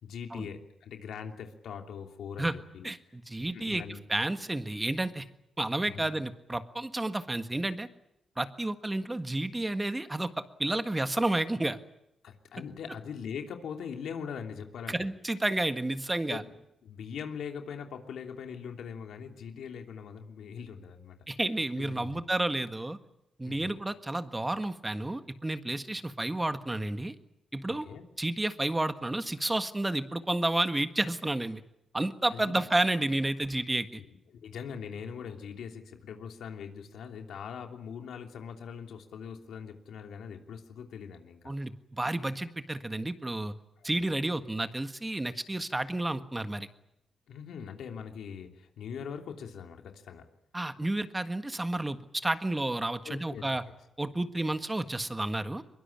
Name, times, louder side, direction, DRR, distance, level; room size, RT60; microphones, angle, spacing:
voice 1, 0.0-2.9 3.5-4.0 5.9-6.1 12.2-15.1 16.3-16.5 16.8-21.2 21.8-22.2 23.4-23.8 27.7-28.0 32.3-32.6 34.0-34.1 34.3-41.5 43.8-44.0 47.3-50.3 53.0-53.6, left 7 dB, 85° left, 4 dB, 3.0 m, -41 dB
voice 2, 2.8-3.8 4.1-5.3 5.6-7.9 8.4-11.8 14.9-16.4 21.3-23.0 23.4-27.1 27.5-27.9 28.2-31.6 31.9-34.0 41.4-43.5 43.8-46.7 50.5-53.6 54.0-55.6, right 2 dB, 15° right, 9 dB, 1.6 m, -31 dB
23.0 x 22.5 x 8.7 m, 0.84 s
cardioid pair, 110°, 0 cm